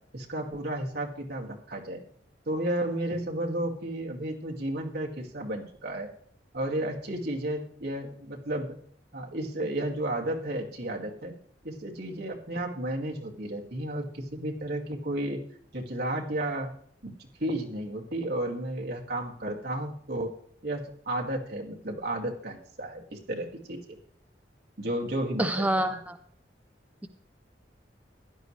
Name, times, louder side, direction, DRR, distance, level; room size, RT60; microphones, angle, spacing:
voice 1, 0.1-2.0 2.5-6.1 6.5-8.7 9.1-11.3 11.6-15.4 15.7-16.7 17.0-20.3 20.6-24.0 24.8-26.0, right 1 dB, 65° right, 0 dB, 2.1 m, -33 dB
voice 2, 25.4-26.1, right 1 dB, 10° right, 8 dB, 0.5 m, -26 dB
16.0 x 11.5 x 3.2 m, 0.62 s
head